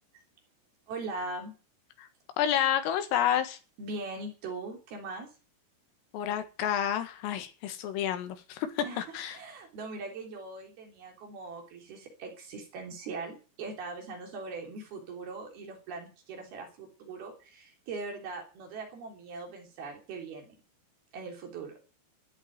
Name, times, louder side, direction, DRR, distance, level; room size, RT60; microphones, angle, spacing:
voice 1, 0.9-1.5 3.8-5.3 8.8-20.5 21.1-21.7, right 3 dB, 50° right, 5.1 m, -40 dB
voice 2, 2.4-3.6 6.1-9.4, left 10 dB, 85° left, 4.3 m, -29 dB
13.5 x 9.0 x 9.2 m
omnidirectional pair, 5.8 m